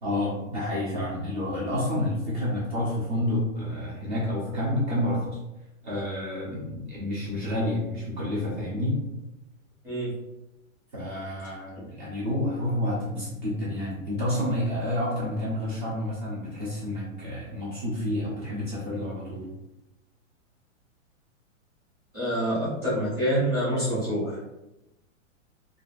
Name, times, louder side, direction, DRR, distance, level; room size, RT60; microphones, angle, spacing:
voice 1, 0.0-5.4 5.8-9.0 10.9-19.5, left 1 dB, 35° right, -7 dB, 0.8 m, -29 dB
voice 2, 22.1-24.3, equal, 5° right, -12 dB, 0.8 m, -26 dB
2.8 x 2.5 x 2.5 m, 0.96 s
hypercardioid pair, 180°, 39 cm